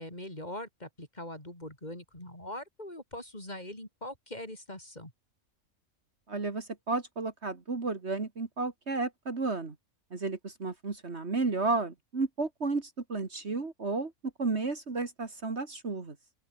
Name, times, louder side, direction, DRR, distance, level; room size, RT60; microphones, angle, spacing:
voice 1, 0.0-5.1, left 1 dB, 30° left, 6.6 m, -42 dB
voice 2, 6.3-9.8 10.1-16.2, right 3 dB, 50° right, 2.5 m, -32 dB
open air
omnidirectional pair, 1.4 m